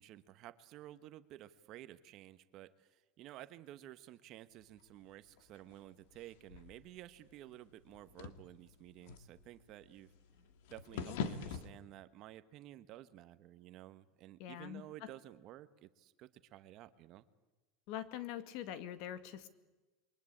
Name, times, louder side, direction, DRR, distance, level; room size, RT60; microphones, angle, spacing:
voice 1, 0.0-10.1 10.7-17.3, right 14 dB, 40° right, 12 dB, 1.2 m, -53 dB
sound 1, 4.6-11.7, left 6 dB, 70° left, 2.3 m, -46 dB
voice 2, 10.9-11.3 14.4-15.1 17.9-19.5, left 11 dB, 50° left, 11 dB, 2.1 m, -44 dB
28.5 x 23.5 x 8.7 m, 1.1 s
supercardioid pair, 170°, 0 cm